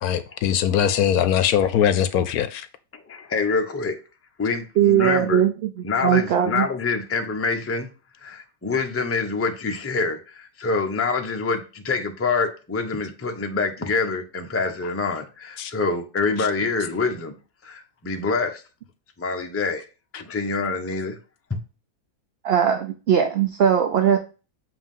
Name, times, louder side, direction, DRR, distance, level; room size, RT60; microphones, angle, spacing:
voice 1, 0.0-2.7 15.6-15.7 16.4-16.5 20.1-20.2, left 9 dB, 75° left, 1.0 m, -21 dB
voice 2, 3.1-4.0 4.4-5.5 5.8-7.9 8.2-17.3 17.6-18.6 19.2-19.8 20.1-21.2 21.5-21.6, left 4 dB, 15° left, 0.4 m, -26 dB
voice 3, 4.8-5.7 6.0-6.7 22.4-24.2, right 9 dB, 65° right, 0.6 m, -19 dB
7.5 x 3.0 x 5.3 m
omnidirectional pair, 1.7 m